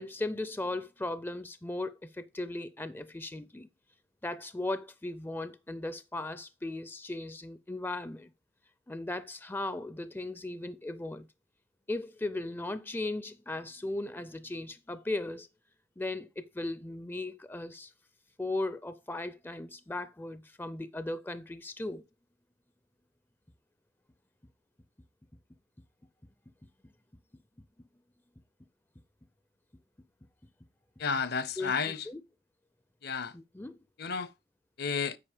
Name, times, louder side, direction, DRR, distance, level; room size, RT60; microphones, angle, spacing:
voice 1, 0.0-3.7 4.2-8.3 8.9-11.3 11.9-15.5 16.0-17.9 18.4-22.0 31.6-31.7 32.1-32.2 33.3-33.8, left 2 dB, 10° left, 0.4 m, -37 dB
voice 2, 31.0-32.1 33.0-33.3 34.0-34.3 34.8-35.2, left 5 dB, 55° left, 0.6 m, -32 dB
8.7 x 5.0 x 5.0 m
head